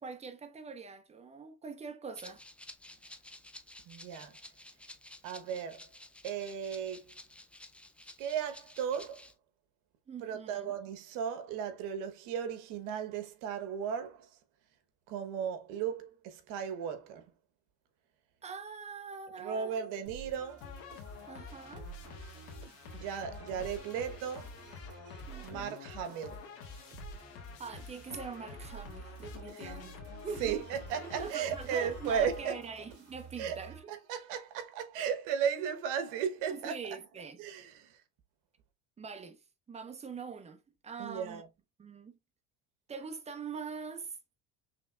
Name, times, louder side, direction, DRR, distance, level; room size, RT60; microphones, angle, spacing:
voice 1, 0.0-2.4 8.0-8.1 10.1-10.7 18.4-19.8 21.3-21.9 25.3-25.8 27.2-27.3 27.6-30.6 31.0-33.8 36.5-37.4 39.0-41.4 41.8-42.2 42.9-44.2, right 5 dB, 20° right, 0.9 m, -44 dB
Rattle (instrument), 2.1-9.3, left 1 dB, 5° left, 0.4 m, -53 dB
voice 2, 3.9-4.4 5.2-5.8 6.2-7.1 8.2-9.3 10.2-14.3 15.1-17.2 19.4-20.7 22.9-24.6 25.4-26.5 29.5-29.8 30.4-32.6 33.4-33.6 33.9-36.7 37.4-38.0 41.0-41.5, right 8 dB, 70° right, 1.2 m, -35 dB
sound 1, 20.1-34.3, right 6 dB, 45° right, 3.1 m, -51 dB
sound 2, 20.6-33.0, left 5 dB, 75° left, 1.5 m, -48 dB
5.8 x 3.4 x 2.3 m
cardioid pair, 125°, 33 cm